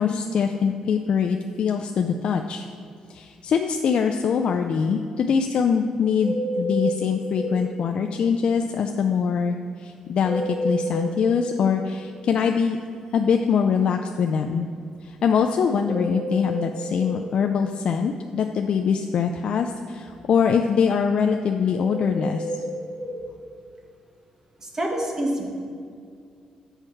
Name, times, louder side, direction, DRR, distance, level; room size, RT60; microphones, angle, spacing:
voice 1, 0.0-2.7 3.1-12.8 13.1-14.7 15.0-22.6, left 6 dB, 55° left, 4 dB, 0.3 m, -23 dB
sound 1, 6.2-7.6 10.2-11.6 15.8-17.2 21.8-23.2, right 1 dB, ahead, 2.0 m, -29 dB
voice 2, 24.6-25.5, right 1 dB, 25° right, 0 dB, 1.2 m, -26 dB
8.0 x 4.5 x 5.8 m, 2.3 s
cardioid pair, 125°, 2 cm